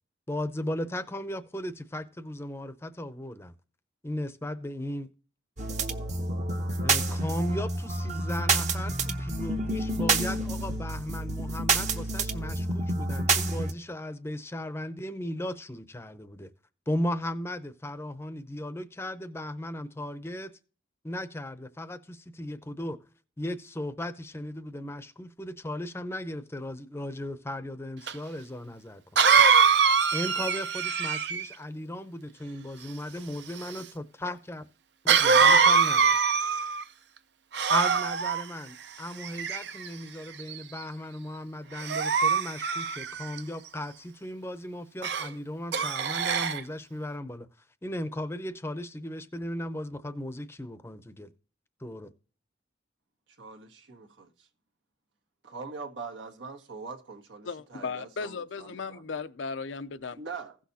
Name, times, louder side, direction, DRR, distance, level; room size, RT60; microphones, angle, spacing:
voice 1, 0.3-3.5 4.0-5.1 6.8-16.5 16.9-20.5 21.0-23.0 23.4-29.2 30.1-34.6 35.0-36.2 37.7-47.5 47.8-51.3 51.8-52.1, left 1 dB, 15° left, 0.6 m, -36 dB
sound 1, 5.6-13.7, right 3 dB, 40° right, 0.9 m, -28 dB
Cough, 28.1-28.2 29.2-31.5 35.1-36.8 37.5-38.4 39.2-39.9 40.5-40.8 41.8-43.4 45.0-45.3 45.7-46.6, right 6 dB, 65° right, 0.6 m, -23 dB
voice 2, 53.4-54.5 55.4-59.0 60.2-60.6, right 4 dB, 85° right, 1.6 m, -42 dB
voice 3, 57.5-60.2, left 5 dB, 85° left, 0.6 m, -36 dB
16.0 x 6.2 x 2.7 m
head